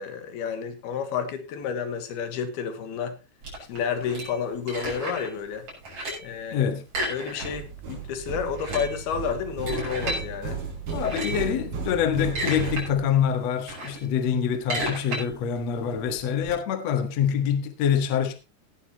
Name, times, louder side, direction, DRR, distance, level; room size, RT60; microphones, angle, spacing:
voice 1, 0.0-3.2 3.7-5.7 6.2-6.7 7.1-10.6, left 7 dB, 75° left, 3.3 m, -30 dB
sound 1, 3.4-5.4 5.7-6.4 6.9-8.0 8.5-10.2 10.9-11.5 12.0-12.9 13.2-16.5, right 1 dB, 45° right, 8.0 m, -33 dB
voice 2, 6.5-6.9 10.9-18.3, left 8 dB, 55° left, 2.2 m, -25 dB
sound 2, 7.4-13.4, right 5 dB, 60° right, 6.4 m, -35 dB
17.5 x 11.0 x 3.0 m
omnidirectional pair, 4.6 m